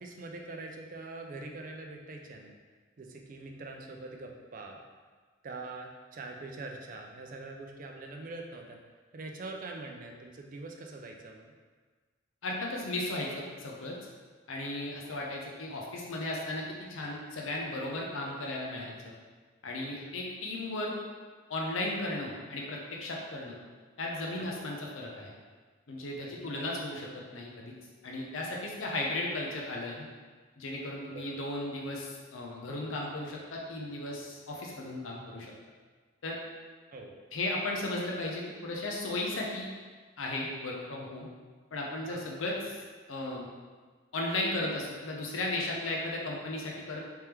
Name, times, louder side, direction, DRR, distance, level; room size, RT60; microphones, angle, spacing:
voice 1, 0.0-2.6 3.0-4.8 5.4-8.8 9.1-11.5 24.4-24.5 26.2-26.7 31.1-31.4 36.9-37.1 42.1-42.2, right 3 dB, 40° right, 2 dB, 0.4 m, -43 dB
voice 2, 12.4-14.0 14.5-19.1 19.6-20.9 21.5-23.6 24.0-25.3 25.9-27.7 28.0-30.1 30.6-35.5 36.2-36.4 37.3-39.7 40.2-41.3 41.7-42.8 43.1-43.5 44.1-47.0, left 2 dB, 80° left, -2 dB, 0.6 m, -35 dB
3.4 x 3.0 x 3.3 m, 1.5 s
head